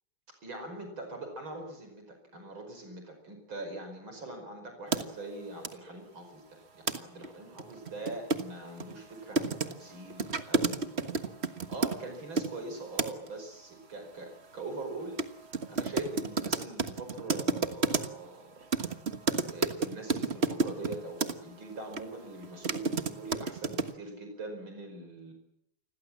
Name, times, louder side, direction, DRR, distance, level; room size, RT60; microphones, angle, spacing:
voice 1, 0.4-15.2 15.7-18.7 19.5-25.3, right 2 dB, 75° right, 5 dB, 5.9 m, -42 dB
sound 1, 4.9-5.0 5.6-5.7 6.9-7.0 7.2-7.3 7.6-12.5 13.0-13.3 15.2-15.3 15.5-18.3 18.7-21.3 21.9-22.0 22.4-23.9, right 4 dB, 35° right, 1.5 m, -30 dB
29.0 x 21.5 x 7.5 m, 0.78 s
omnidirectional pair, 2.2 m